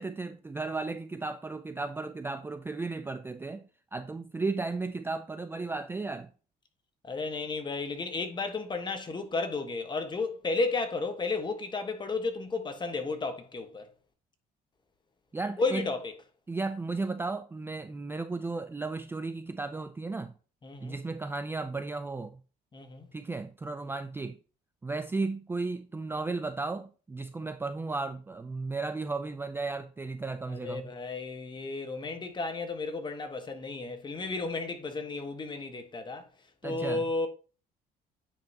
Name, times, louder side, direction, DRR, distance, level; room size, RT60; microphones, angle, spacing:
voice 1, 0.0-6.3 15.3-15.9 16.5-20.3 20.8-22.4 23.1-24.4 24.8-30.9 36.6-37.0, right 3 dB, 15° right, 0.4 m, -34 dB
voice 2, 7.0-13.9 15.6-16.1 20.6-21.0 22.7-23.1 30.5-36.3 36.6-37.3, left 3 dB, 25° left, 1.3 m, -33 dB
9.2 x 5.4 x 2.9 m
cardioid pair, 110°, 17 cm